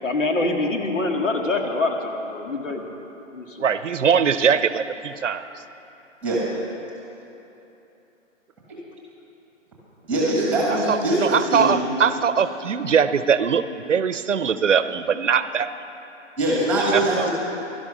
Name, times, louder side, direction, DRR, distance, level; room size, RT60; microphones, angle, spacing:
voice 1, 0.0-2.9 3.3-3.7 10.1-10.3, left 2 dB, 75° left, 3 dB, 2.1 m, -25 dB
voice 2, 3.6-5.4 10.7-15.7 16.8-17.3, right 7 dB, 70° right, 12 dB, 0.8 m, -21 dB
voice 3, 10.1-11.8 16.4-17.3, right 1 dB, 5° right, -4 dB, 1.4 m, -22 dB
16.0 x 12.0 x 6.2 m, 3.0 s
hypercardioid pair, 170°, 38 cm